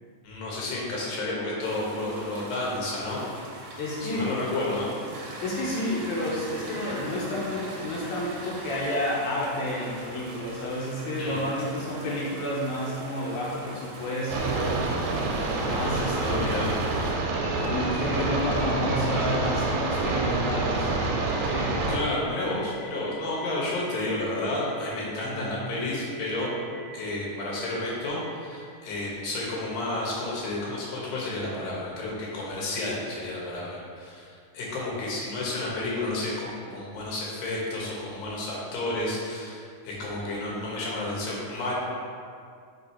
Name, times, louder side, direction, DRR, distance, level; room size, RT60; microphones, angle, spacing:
voice 1, 0.2-3.2 4.0-4.9 11.2-11.4 16.2-16.7 21.9-26.5 26.9-34.2 34.5-41.7, left 2 dB, 85° left, -4 dB, 3.0 m, -31 dB
sound 1, 1.6-17.1, right 2 dB, 70° right, 2.1 m, -42 dB
voice 2, 3.8-4.3 5.4-14.8 15.6-16.8 17.6-20.9 21.4-21.8 25.2-25.5, left 1 dB, 70° left, -6 dB, 2.1 m, -30 dB
sound 2, 14.3-22.0, right 3 dB, 85° right, 2.4 m, -27 dB
sound 3, 17.2-29.2, equal, 45° left, 1.8 m, -44 dB
6.3 x 3.6 x 4.3 m, 2.2 s
omnidirectional pair, 3.9 m